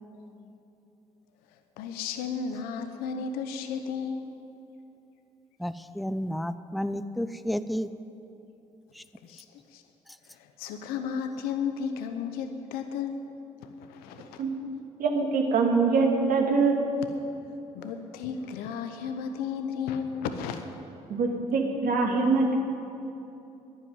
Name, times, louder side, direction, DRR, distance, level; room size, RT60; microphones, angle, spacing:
voice 1, 1.8-4.3 9.2-9.4 9.7-9.8 10.3-13.2 13.6-14.4 17.7-20.6, left 6 dB, 80° left, 7 dB, 0.9 m, -34 dB
voice 2, 5.6-7.9 9.0-9.1, equal, ahead, 12 dB, 0.6 m, -31 dB
voice 3, 15.0-16.8 21.1-22.6, right 4 dB, 65° right, 1 dB, 2.3 m, -24 dB
10.5 x 10.5 x 9.6 m, 2.8 s
hypercardioid pair, 50°, 15 cm